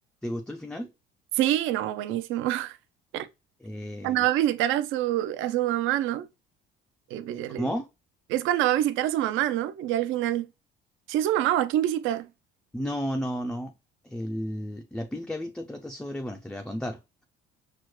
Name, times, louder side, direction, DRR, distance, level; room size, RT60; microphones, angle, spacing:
voice 1, 0.2-0.9 3.6-4.3 7.6-7.9 12.7-13.7 14.0-17.2, equal, 5° left, 0.3 m, -33 dB
voice 2, 1.3-2.8 3.1-3.3 4.0-6.3 7.1-7.7 8.3-10.5 11.1-12.3, right 13 dB, 70° right, 0.5 m, -26 dB
6.1 x 2.1 x 3.1 m
cardioid pair, 145°, 21 cm